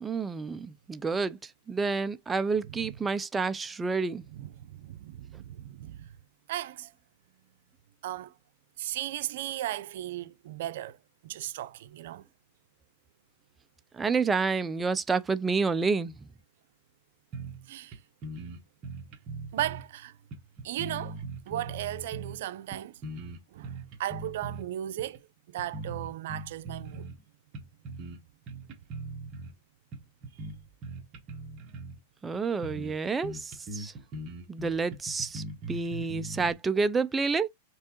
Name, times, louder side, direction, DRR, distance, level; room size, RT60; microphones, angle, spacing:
voice 1, 0.0-4.2 13.9-16.1 32.2-33.9 34.5-37.5, right 4 dB, 15° right, 0.3 m, -29 dB
voice 2, 2.7-3.0 4.3-6.1 6.5-6.9 8.0-8.3 8.8-11.0 11.2-12.2 17.7-18.0 19.5-20.2 20.6-21.2 21.4-23.0 23.5-25.3 25.5-27.1, right 13 dB, 65° right, 0.6 m, -36 dB
sound 1, 17.3-17.7 17.9-18.0 18.2-19.9 20.3-22.4 22.7-24.6 25.0-25.2 25.6-27.2 27.5-28.2 28.5-29.5 29.9-32.0 32.3-32.4 32.6-33.0 33.2-36.5, right 2 dB, 35° right, 1.4 m, -40 dB
4.5 x 3.5 x 2.9 m
supercardioid pair, 140°, 0 cm